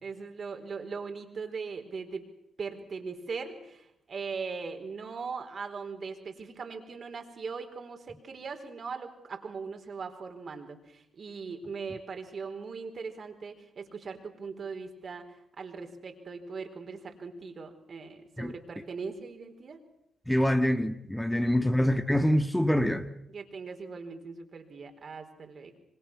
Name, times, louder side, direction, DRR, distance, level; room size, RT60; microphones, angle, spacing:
voice 1, 0.0-2.2 2.6-15.2 15.6-19.8 21.3-21.7 23.3-25.8, right 5 dB, 50° right, 4.4 m, -40 dB
voice 2, 20.3-23.1, equal, 5° left, 1.8 m, -25 dB
26.5 x 25.5 x 6.3 m
hypercardioid pair, 45°, 0 cm